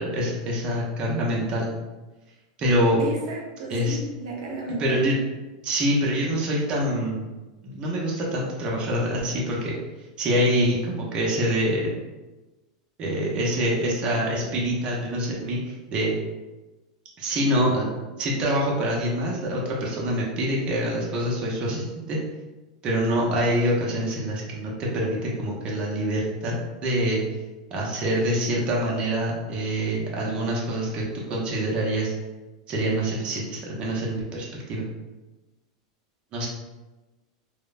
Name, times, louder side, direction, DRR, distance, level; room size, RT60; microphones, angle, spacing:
voice 1, 0.0-1.7 2.6-3.0 3.7-4.0 4.8-5.2 5.6-7.3 7.6-9.8 10.2-11.9 13.0-16.1 17.2-17.9 18.2-22.2 22.8-27.2 27.7-32.1 32.7-34.8 36.3-36.5, equal, 30° right, -3 dB, 0.6 m, -25 dB
voice 2, 3.0-4.8, right 2 dB, 70° right, -1 dB, 0.6 m, -33 dB
3.0 x 2.0 x 2.3 m, 1.1 s
supercardioid pair, 140°, 3 cm